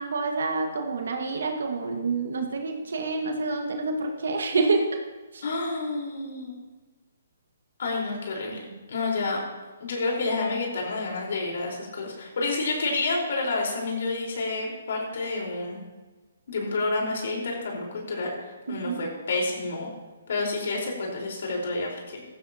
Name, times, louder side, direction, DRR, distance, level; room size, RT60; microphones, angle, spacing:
voice 1, 0.0-5.0 5.3-5.4 8.5-8.8 18.7-19.0, right 3 dB, 75° right, 3 dB, 1.6 m, -28 dB
voice 2, 5.4-6.6 7.8-9.4 9.8-15.8 16.5-19.9 20.3-22.2, left 3 dB, 65° left, -1 dB, 4.4 m, -29 dB
15.5 x 13.5 x 2.9 m, 1.2 s
hypercardioid pair, 145°, 0 cm